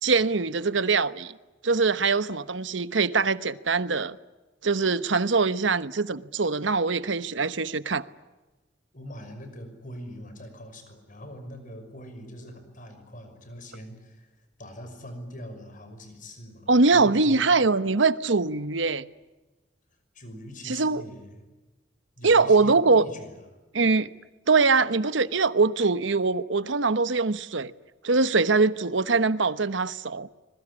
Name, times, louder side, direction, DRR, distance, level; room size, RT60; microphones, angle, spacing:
voice 1, 0.0-1.3 1.6-4.1 4.6-8.0 16.7-19.1 20.6-21.0 22.2-23.0 23.7-24.1 24.5-27.7 28.0-30.3, right 4 dB, 75° right, 1.1 m, -23 dB
voice 2, 8.9-17.5 20.1-21.4 22.2-23.6, equal, 45° left, 5.9 m, -43 dB
25.5 x 22.0 x 9.9 m
head